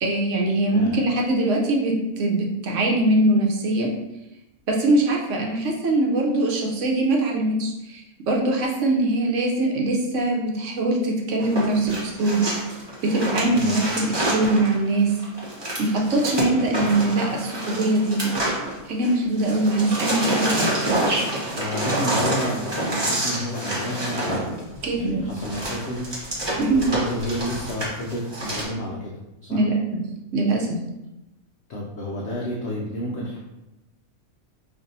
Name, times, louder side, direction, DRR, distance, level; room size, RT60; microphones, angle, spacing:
voice 1, 0.0-3.9 4.7-12.4 13.0-15.1 15.8-18.3 18.9-20.7 24.8-25.2 26.6-26.9 29.5-29.8 30.3-30.8, right 2 dB, 65° right, -1 dB, 0.9 m, -22 dB
voice 2, 0.7-1.0 13.4-13.7 21.6-24.6 24.9-29.2 29.5-29.6 31.7-33.4, equal, 60° left, -3 dB, 0.8 m, -31 dB
sound 1, 11.4-19.1 19.4-28.6, right 1 dB, 20° right, 0.9 m, -27 dB
5.4 x 2.6 x 2.6 m, 0.97 s
omnidirectional pair, 1.5 m